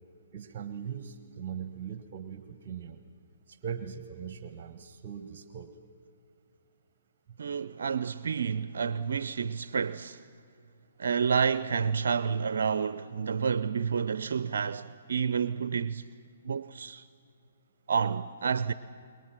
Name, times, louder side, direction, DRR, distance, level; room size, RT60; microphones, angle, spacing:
voice 1, 0.3-3.0 3.5-5.7 7.3-7.4, right 8 dB, 40° right, 1.2 m, -40 dB
voice 2, 7.4-10.2 11.0-16.0 16.4-17.0 17.9-18.7, right 6 dB, 65° right, 0.6 m, -29 dB
28.5 x 22.5 x 6.0 m
hypercardioid pair, 135°, 0 cm